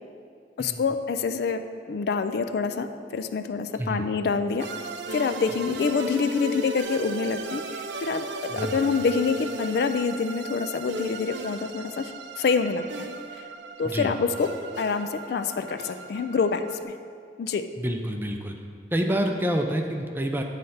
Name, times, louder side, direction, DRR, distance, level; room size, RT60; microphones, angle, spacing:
voice 1, 0.6-1.6 1.9-4.7 5.1-12.1 12.4-13.1 13.3-13.4 13.8-14.5 14.8-16.9 17.4-17.7, left 5 dB, 60° left, 9 dB, 0.3 m, -26 dB
sound 1, 4.6-16.8, right 2 dB, 80° right, 0.4 m, -36 dB
voice 2, 17.8-18.6 18.9-20.4, right 1 dB, 10° right, 3 dB, 0.4 m, -28 dB
8.8 x 3.3 x 5.5 m, 2.2 s
head